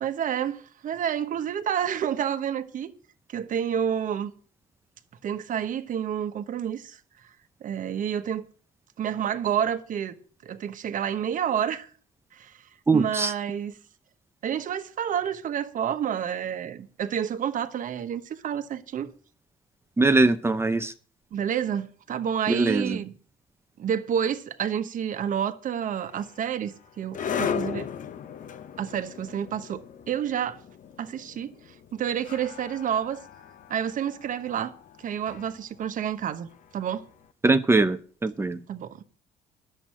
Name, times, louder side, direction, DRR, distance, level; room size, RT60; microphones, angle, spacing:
voice 1, 0.0-2.9 3.3-4.3 5.2-7.0 7.6-8.4 9.0-10.2 10.4-11.9 12.3-12.6 12.9-13.7 14.4-19.1 21.3-23.1 23.8-27.9 28.8-30.6 31.0-33.2 33.7-34.7 35.0-37.0 38.7-39.0, right 9 dB, 50° right, 1.1 m, -29 dB
voice 2, 12.9-13.3 20.0-20.9 22.5-23.0 37.4-38.6, right 3 dB, 15° right, 0.7 m, -22 dB
sound 1, 26.0-37.1, left 7 dB, 50° left, 1.0 m, -37 dB
11.0 x 7.7 x 7.5 m
cardioid pair, 110°, 17 cm